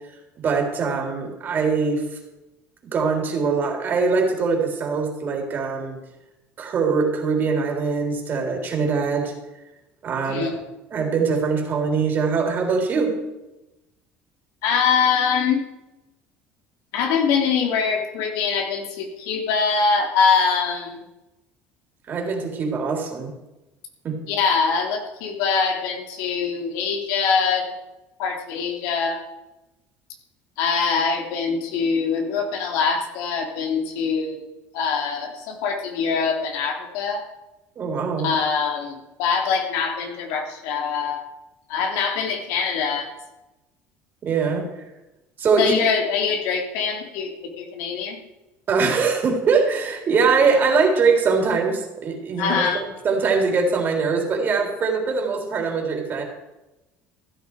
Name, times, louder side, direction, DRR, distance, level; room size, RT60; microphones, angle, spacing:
voice 1, 0.4-2.0 2.8-6.0 6.6-9.3 10.0-10.5 10.9-13.1 22.1-23.3 24.0-24.2 37.8-38.3 44.2-44.7 45.4-45.7 48.7-52.7 53.0-56.2, right 5 dB, 35° right, 1 dB, 3.8 m, -22 dB
voice 2, 14.6-15.6 16.9-21.0 24.2-27.7 28.2-29.2 30.6-37.2 38.2-41.2 41.7-43.1 45.6-48.2 52.4-52.8, left 5 dB, 80° left, 2 dB, 3.1 m, -23 dB
15.0 x 12.5 x 4.9 m, 1.0 s
cardioid pair, 130°, 5 cm